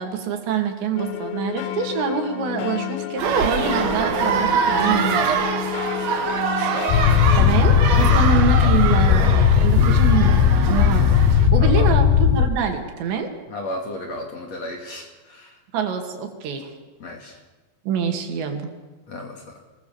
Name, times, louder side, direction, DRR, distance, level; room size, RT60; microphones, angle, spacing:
voice 1, 0.0-5.4 7.4-11.2 11.5-13.3 15.7-16.7 17.9-18.7, right 6 dB, 80° right, 4 dB, 4.6 m, -25 dB
sound 1, 1.0-8.2, left 13 dB, 90° left, 3.8 m, -30 dB
sound 2, 3.2-11.5, right 6 dB, 60° right, 1.8 m, -24 dB
voice 2, 6.2-6.5 8.1-8.4 11.6-11.9 13.5-15.6 17.0-17.4 19.1-19.6, left 1 dB, 45° left, 2 dB, 3.0 m, -34 dB
sound 3, 6.9-12.5, left 8 dB, 75° left, 2.7 m, -16 dB
25.0 x 20.5 x 7.2 m, 1.2 s
omnidirectional pair, 5.1 m